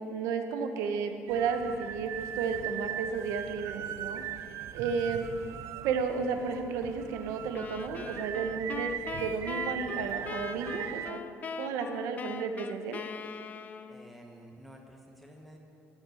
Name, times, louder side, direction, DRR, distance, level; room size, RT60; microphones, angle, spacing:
voice 1, 0.0-4.2 4.7-5.3 5.8-8.9 9.2-11.2 11.6-13.0, right 5 dB, 90° right, 7 dB, 0.9 m, -33 dB
sound 1, 1.3-11.1, right 10 dB, 60° right, 0.3 m, -39 dB
sound 2, 7.5-14.1, left 6 dB, 30° left, 0.3 m, -41 dB
voice 2, 13.9-15.6, equal, ahead, 0 dB, 0.9 m, -51 dB
13.0 x 6.5 x 6.3 m, 2.9 s
cardioid pair, 145°, 5 cm